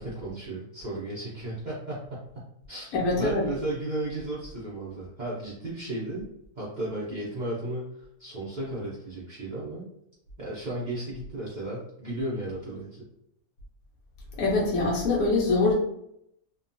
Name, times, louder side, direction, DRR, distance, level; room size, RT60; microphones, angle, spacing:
voice 1, 0.0-6.3 6.5-9.8 10.4-13.0, right 1 dB, 55° right, -8 dB, 0.5 m, -34 dB
voice 2, 2.9-3.4 14.4-15.7, left 3 dB, 75° left, -2 dB, 1.1 m, -24 dB
2.9 x 2.2 x 2.5 m, 0.76 s
omnidirectional pair, 1.6 m